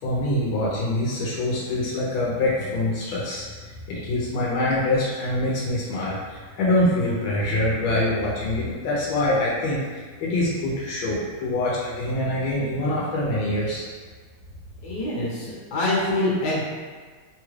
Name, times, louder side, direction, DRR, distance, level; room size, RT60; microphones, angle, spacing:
voice 1, 0.0-13.8, left 1 dB, 85° left, -6 dB, 1.5 m, -25 dB
voice 2, 14.8-16.6, left 1 dB, 60° left, -6 dB, 1.5 m, -25 dB
3.7 x 2.3 x 3.1 m, 1.5 s
omnidirectional pair, 2.2 m